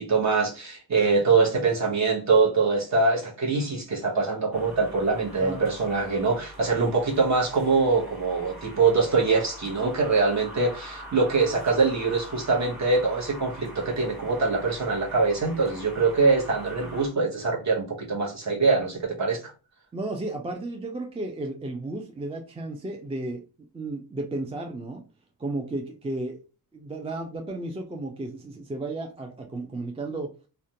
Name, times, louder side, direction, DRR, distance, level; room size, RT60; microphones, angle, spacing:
voice 1, 0.0-19.5, right 4 dB, 45° right, -2 dB, 0.9 m, -23 dB
sound 1, 4.5-17.1, equal, ahead, 1.0 m, -44 dB
voice 2, 19.9-23.4 23.7-25.1 25.4-26.4 26.7-30.3, right 2 dB, 15° right, 2 dB, 0.3 m, -33 dB
2.4 x 2.1 x 2.8 m, 0.33 s
wide cardioid pair, 125°, 38 cm